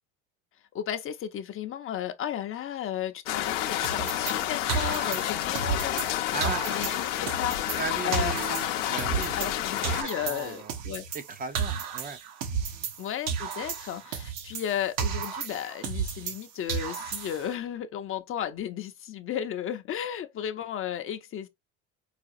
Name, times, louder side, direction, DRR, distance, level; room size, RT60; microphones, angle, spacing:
voice 1, 0.7-7.8 8.0-8.3 9.4-11.0 13.0-21.5, left 10 dB, 40° left, 0.6 m, -34 dB
sound 1, 3.3-10.0, left 13 dB, 80° left, 0.6 m, -30 dB
sound 2, 3.8-6.1 6.4-9.6 9.8-13.0 13.3-16.4 16.7-17.5, right 7 dB, 70° right, 1.0 m, -33 dB
voice 2, 6.3-6.6 7.8-9.3 9.8-10.7 11.1-12.2 12.7-12.9, right 5 dB, 25° right, 0.5 m, -36 dB
4.9 x 2.3 x 2.5 m
supercardioid pair, 100°, 36 cm